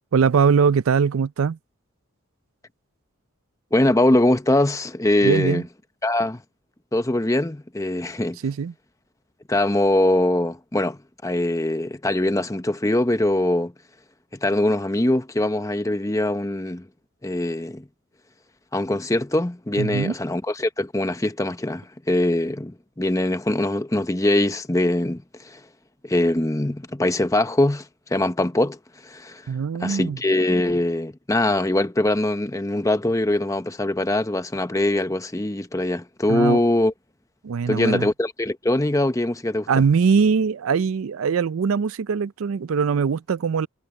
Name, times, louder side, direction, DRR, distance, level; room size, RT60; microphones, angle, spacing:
voice 1, 0.1-1.6 5.2-5.6 8.4-8.7 19.8-20.1 29.5-30.2 36.3-36.6 37.4-38.1 39.7-43.7, right 6 dB, 70° right, 0.4 m, -21 dB
voice 2, 3.7-5.6 6.0-6.4 6.9-8.4 9.5-13.7 14.4-16.9 17.2-17.9 18.7-25.6 26.0-28.8 29.0-29.5 29.8-36.9 37.7-39.7, left 1 dB, 15° left, 0.8 m, -22 dB
head